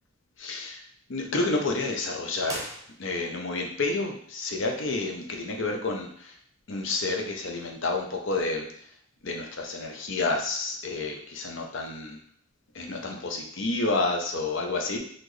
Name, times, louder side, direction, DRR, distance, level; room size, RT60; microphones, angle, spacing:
voice 1, 0.4-2.7 3.0-6.4 6.7-8.9 9.2-12.2 12.7-15.0, left 3 dB, 60° left, 2 dB, 0.7 m, -30 dB
sound 1, 2.4-3.5, right 1 dB, 15° right, 0.7 m, -40 dB
4.2 x 3.0 x 3.1 m, 0.64 s
head